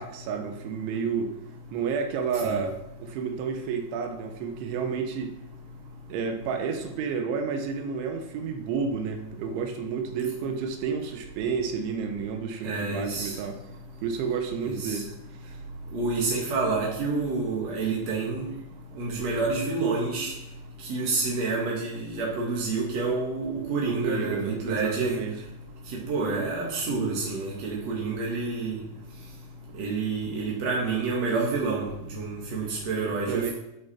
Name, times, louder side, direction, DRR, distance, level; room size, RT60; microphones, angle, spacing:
voice 1, 0.0-1.3 1.7-5.4 6.1-13.6 14.0-15.1 23.8-25.3 33.3-33.5, right 6 dB, 75° right, 5 dB, 3.2 m, -30 dB
voice 2, 12.6-13.3 14.6-15.0 15.9-18.5 19.0-20.3 20.9-25.2 25.9-28.8 29.8-31.9 32.1-33.5, right 3 dB, 60° right, -3 dB, 1.8 m, -28 dB
13.0 x 8.8 x 4.3 m, 0.86 s
omnidirectional pair, 5.8 m